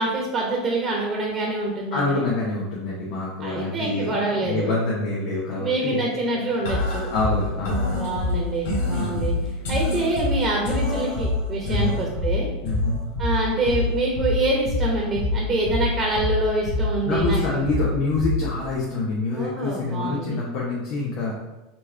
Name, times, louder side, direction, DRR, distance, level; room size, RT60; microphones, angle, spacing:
voice 1, 0.0-2.2 3.4-4.7 5.5-7.1 7.9-9.3 9.7-12.5 13.2-17.6 19.3-20.4, right 2 dB, 30° right, -2 dB, 1.1 m, -26 dB
voice 2, 1.9-6.1 6.3-6.5 7.1-8.0 8.9-9.2 11.7-12.0 12.6-13.0 17.0-21.4, left 3 dB, 60° left, -5 dB, 1.0 m, -26 dB
sound 1, 6.7-18.7, left 2 dB, 80° left, 1.3 m, -26 dB
4.4 x 3.1 x 3.4 m, 1.0 s
supercardioid pair, 110°, 0 cm